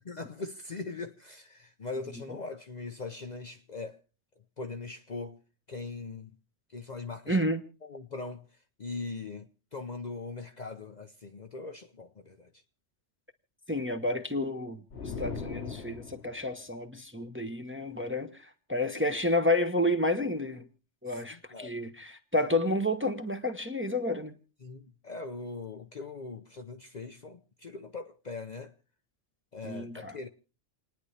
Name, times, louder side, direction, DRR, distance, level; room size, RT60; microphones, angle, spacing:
voice 1, 0.1-4.0 4.6-5.4 5.7-6.3 6.7-7.4 7.8-8.5 8.8-12.5 21.1-21.8 24.6-28.7 29.5-30.3, left 3 dB, 40° left, 0.8 m, -41 dB
voice 2, 7.3-7.6 13.7-20.7 21.0-24.3 29.6-30.2, left 1 dB, 10° right, 0.9 m, -30 dB
sound 1, 14.9-16.5, left 5 dB, 60° left, 1.4 m, -39 dB
29.0 x 10.0 x 3.3 m
omnidirectional pair, 1.2 m